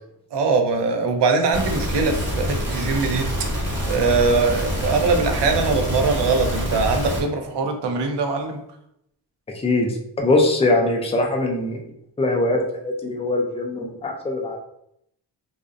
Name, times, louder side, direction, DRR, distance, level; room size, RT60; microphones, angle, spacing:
voice 1, 0.3-3.3 3.5-8.6, right 4 dB, 70° right, 5 dB, 0.6 m, -22 dB
sound 1, 1.5-7.2, equal, 35° right, 1.1 m, -26 dB
voice 2, 9.5-11.8 12.2-14.6, left 2 dB, 15° left, 1 dB, 0.4 m, -22 dB
2.5 x 2.0 x 2.4 m, 0.77 s
cardioid pair, 60°, 45 cm